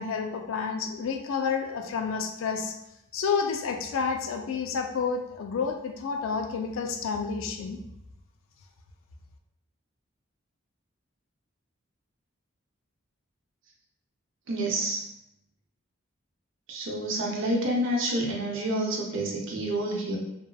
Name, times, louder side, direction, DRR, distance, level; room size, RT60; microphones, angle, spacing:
voice 1, 0.0-2.8 3.1-7.8, left 5 dB, 75° left, 4 dB, 0.3 m, -30 dB
voice 2, 14.5-15.0 16.7-20.2, right 1 dB, 70° right, -2 dB, 0.6 m, -28 dB
2.8 x 2.2 x 2.3 m, 0.84 s
head